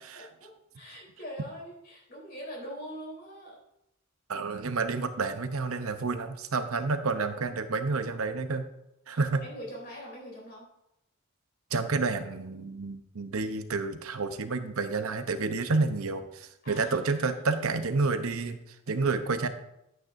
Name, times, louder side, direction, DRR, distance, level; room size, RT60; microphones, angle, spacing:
voice 1, 0.0-3.6 9.1-10.7 16.6-17.6, equal, 45° left, -3 dB, 3.4 m, -43 dB
voice 2, 4.3-8.7 9.1-9.4 11.7-19.5, right 4 dB, 75° right, 9 dB, 0.8 m, -29 dB
11.5 x 9.1 x 2.6 m, 0.85 s
head